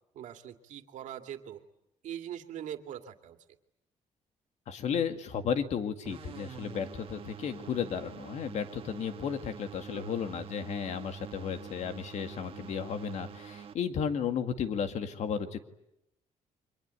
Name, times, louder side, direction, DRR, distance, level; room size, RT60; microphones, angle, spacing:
voice 1, 0.1-1.6 2.0-3.4 9.9-10.2, right 10 dB, 75° right, 6 dB, 2.3 m, -42 dB
voice 2, 4.7-15.6, left 7 dB, 65° left, 7 dB, 2.1 m, -34 dB
sound 1, 6.1-13.7, right 8 dB, 45° right, 1.5 m, -46 dB
29.5 x 24.5 x 8.3 m, 0.84 s
cardioid pair, 145°, 13 cm